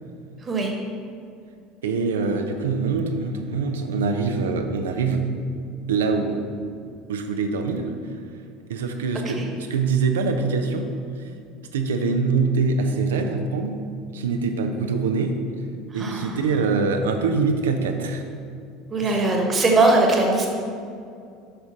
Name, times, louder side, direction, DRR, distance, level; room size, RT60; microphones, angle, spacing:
voice 1, 0.4-0.7 9.3-9.5 15.9-16.4 18.9-20.5, right 2 dB, 25° right, 1 dB, 1.4 m, -20 dB
voice 2, 1.8-5.3 5.9-6.6 7.1-7.9 8.7-10.9 11.2-11.3 11.7-13.8 14.1-15.4 15.9-18.2 19.0-19.2, right 4 dB, 70° right, 5 dB, 0.7 m, -24 dB
6.7 x 5.8 x 5.2 m, 2.4 s
figure-of-eight pair, 70°, 0 cm